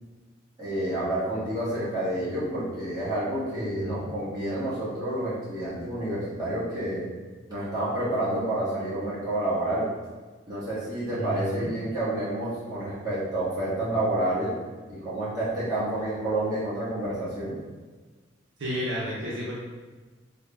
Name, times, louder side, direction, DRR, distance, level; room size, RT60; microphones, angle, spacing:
voice 1, 0.6-7.0 7.5-9.9 10.5-14.5 14.9-17.5, right 1 dB, 20° right, -11 dB, 1.3 m, -29 dB
voice 2, 3.5-4.2 11.1-11.7 18.6-19.5, equal, 70° right, -5 dB, 0.7 m, -32 dB
3.5 x 2.2 x 3.3 m, 1.3 s
head